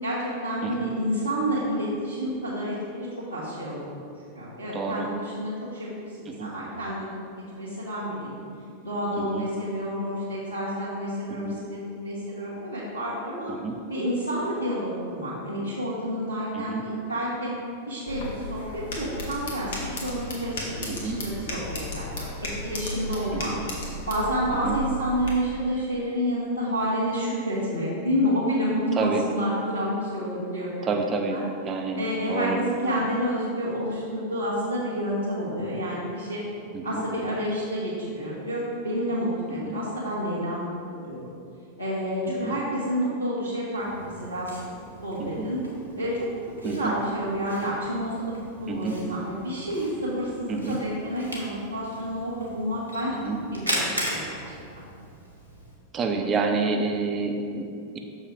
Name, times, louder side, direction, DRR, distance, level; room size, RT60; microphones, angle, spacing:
voice 1, 0.0-4.0 4.3-7.1 7.5-8.4 8.8-13.5 13.9-17.5 17.9-23.5 24.1-30.9 31.3-31.4 32.0-36.4 36.8-41.3 41.8-44.5 45.0-45.6 46.0-46.2 46.6-48.3 48.6-53.1 53.5-54.8, equal, 80° left, -10 dB, 1.3 m, -29 dB
voice 2, 4.7-5.1 6.3-6.5 9.2-9.5 11.3-11.5 13.6-13.8 16.5-16.8 20.9-21.2 23.3-23.6 24.6-24.8 28.9-29.2 30.8-32.0 32.3-32.6 36.7-37.0 39.5-39.8 42.3-42.5 45.2-45.5 46.6-46.9 48.7-49.0 50.5-50.8 53.1-53.4 55.9-58.0, right 4 dB, 25° right, 3 dB, 0.7 m, -29 dB
sound 1, 18.1-25.3, left 1 dB, 60° left, 1.2 m, -35 dB
Camera, 43.7-55.7, equal, 85° right, 1.1 m, -38 dB
6.5 x 5.3 x 3.5 m, 2.4 s
figure-of-eight pair, 90°, 0 cm